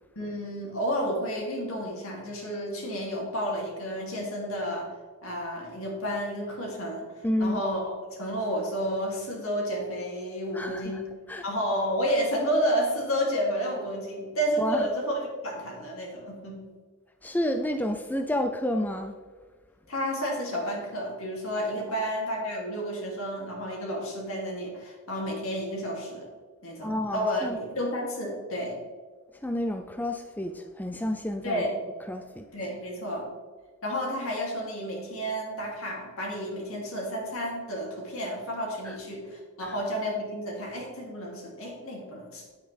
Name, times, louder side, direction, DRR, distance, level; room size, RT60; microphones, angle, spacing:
voice 1, 0.1-4.9 5.2-11.1 11.4-16.6 19.9-26.3 26.6-28.8 31.4-31.8 32.5-33.3 33.8-42.4, equal, 70° left, -1 dB, 2.8 m, -31 dB
voice 2, 7.2-7.6 10.5-11.0 11.3-11.4 14.6-14.8 17.2-19.2 21.9-22.1 26.8-27.6 29.4-31.6 32.1-32.5 38.8-39.0 39.6-39.7, left 1 dB, 10° left, 6 dB, 0.4 m, -30 dB
9.5 x 8.8 x 3.4 m, 1.5 s
head